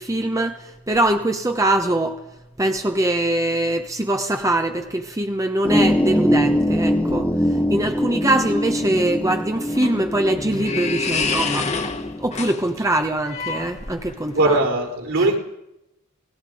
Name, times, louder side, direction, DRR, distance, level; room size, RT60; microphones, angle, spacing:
voice 1, 0.0-2.2 2.6-7.3 7.7-11.9 12.2-14.6 15.2-15.3, right 1 dB, 15° right, 5 dB, 1.1 m, -23 dB
sound 1, 5.6-12.6, equal, 5° left, 1.3 m, -23 dB
sound 2, 9.5-14.3, left 4 dB, 30° left, 1.6 m, -28 dB
voice 2, 14.3-15.4, right 2 dB, 60° right, 3 dB, 4.3 m, -19 dB
29.0 x 18.5 x 5.0 m, 0.86 s
head